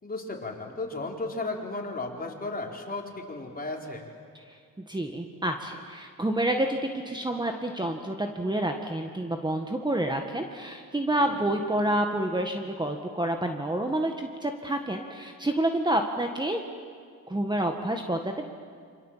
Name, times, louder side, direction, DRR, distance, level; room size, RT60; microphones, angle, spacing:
voice 1, 0.0-4.1 11.2-11.5, left 2 dB, 25° left, 1 dB, 4.3 m, -35 dB
voice 2, 4.9-6.8 7.1-16.6 17.3-18.5, right 1 dB, 15° right, 4 dB, 1.8 m, -28 dB
28.0 x 26.0 x 7.6 m, 2.1 s
cardioid pair, 90°, 33 cm